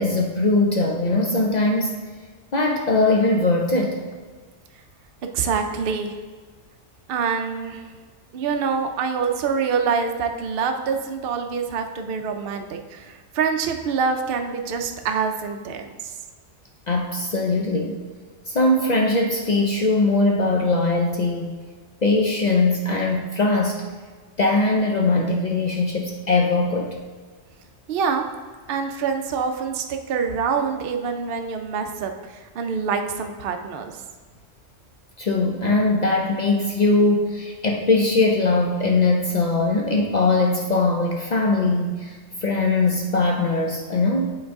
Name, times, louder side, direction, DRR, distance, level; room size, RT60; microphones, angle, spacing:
voice 1, 0.0-2.0 2.5-4.0 16.9-18.0 18.5-21.6 22.0-23.8 24.4-27.0 35.2-44.3, left 2 dB, 55° left, 1 dB, 0.4 m, -21 dB
voice 2, 5.3-6.2 7.1-7.8 8.3-16.1 27.9-28.3 28.7-34.0, right 5 dB, 60° right, 5 dB, 0.6 m, -25 dB
8.6 x 3.9 x 3.6 m, 1.5 s
omnidirectional pair, 1.3 m